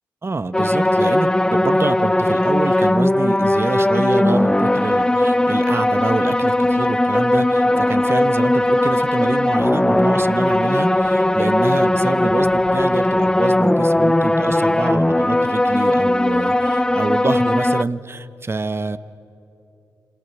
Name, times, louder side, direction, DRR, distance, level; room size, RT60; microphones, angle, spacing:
voice 1, 0.2-19.0, right 3 dB, 35° right, 13 dB, 1.1 m, -26 dB
sound 1, 0.5-17.8, left 1 dB, 10° left, 0.5 m, -18 dB
Thunder, 4.8-17.1, left 2 dB, 65° left, 6.9 m, -51 dB
27.5 x 25.0 x 7.0 m, 2.8 s
supercardioid pair, 50°, 7 cm